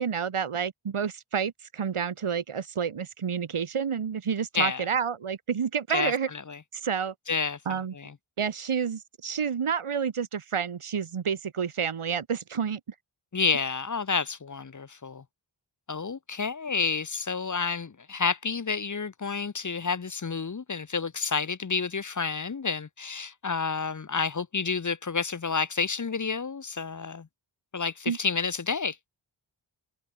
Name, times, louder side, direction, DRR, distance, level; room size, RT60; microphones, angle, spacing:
voice 1, 0.0-6.3 6.8-7.1 7.7-7.9 8.4-12.8 28.1-28.2, right 7 dB, 85° right, 1.8 m, -29 dB
voice 2, 4.5-4.9 5.9-6.1 6.5-6.6 7.3-8.1 13.3-15.2 15.9-27.3 27.7-29.0, left 5 dB, 35° left, 0.8 m, -30 dB
wide cardioid pair, 85°, 49 cm